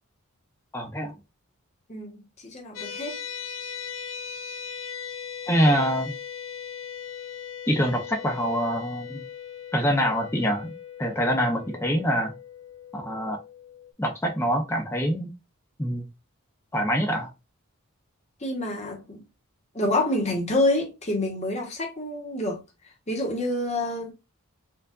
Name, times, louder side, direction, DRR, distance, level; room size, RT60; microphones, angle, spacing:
voice 1, 0.7-1.1 5.5-6.1 7.7-9.2 9.7-10.7 11.0-12.3 12.9-13.4 14.0-15.3 15.8-16.0 16.7-17.3, equal, 10° left, 0.7 m, -25 dB
voice 2, 1.9-3.2 18.4-19.2 19.7-22.6 23.1-24.1, left 1 dB, 30° left, 1.2 m, -27 dB
sound 1, 2.7-13.9, left 7 dB, 60° left, 0.7 m, -39 dB
4.6 x 2.5 x 2.5 m
head